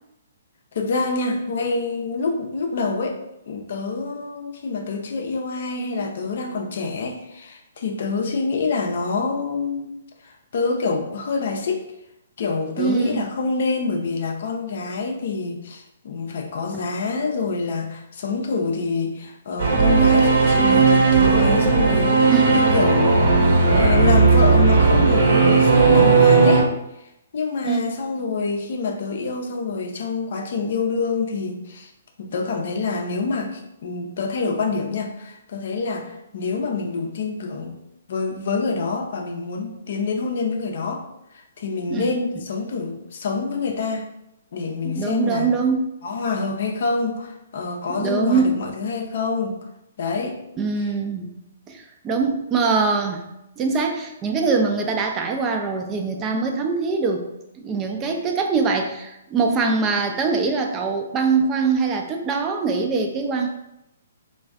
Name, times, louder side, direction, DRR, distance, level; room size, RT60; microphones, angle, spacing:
voice 1, 0.7-3.2 3.5-9.9 10.2-11.8 12.4-26.7 27.3-31.9 32.2-37.8 38.1-41.0 41.3-44.1 44.5-45.5 46.0-49.6 50.0-50.4 50.8-50.9 59.5-59.7, left 4 dB, 60° left, 3 dB, 0.5 m, -26 dB
voice 2, 12.8-13.2 16.7-16.8 22.3-22.5 27.6-27.9 41.9-42.4 44.8-45.9 48.0-48.6 50.6-51.3 51.7-53.2 53.6-57.3 57.5-63.5, right 4 dB, 25° right, 3 dB, 0.4 m, -23 dB
Singing / Musical instrument, 19.6-26.6, right 4 dB, 65° right, 0.9 m, -16 dB
2.4 x 2.2 x 3.4 m, 0.85 s
figure-of-eight pair, 130°, 0 cm